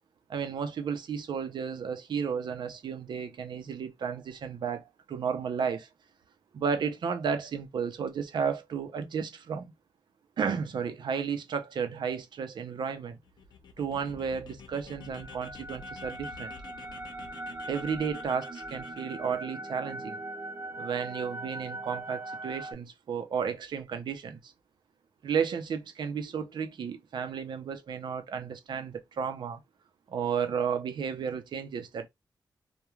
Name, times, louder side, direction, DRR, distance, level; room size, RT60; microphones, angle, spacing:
voice 1, 0.3-5.9 6.5-9.7 10.4-13.2 13.8-16.5 17.7-20.2 20.8-24.5 25.2-29.6 30.1-32.1, right 6 dB, 85° right, 0.5 m, -33 dB
sound 1, 13.2-19.3, left 5 dB, 70° left, 0.6 m, -49 dB
sound 2, 15.0-22.7, right 1 dB, 25° right, 0.6 m, -40 dB
2.3 x 2.2 x 3.0 m
wide cardioid pair, 120°, 8 cm